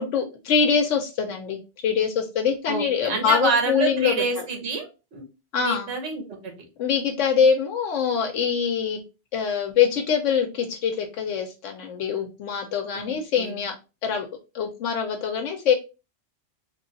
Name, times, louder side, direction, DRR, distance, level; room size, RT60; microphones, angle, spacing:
voice 1, 0.0-1.6 1.8-4.2 5.5-5.9 6.8-9.0 9.3-13.7 14.0-14.3 14.5-15.7, left 7 dB, 85° left, 3 dB, 1.0 m, -24 dB
voice 2, 2.7-5.2 5.6-6.5 12.9-13.6, right 4 dB, 65° right, 3 dB, 1.2 m, -27 dB
3.1 x 2.3 x 3.8 m, 0.29 s
omnidirectional pair, 1.2 m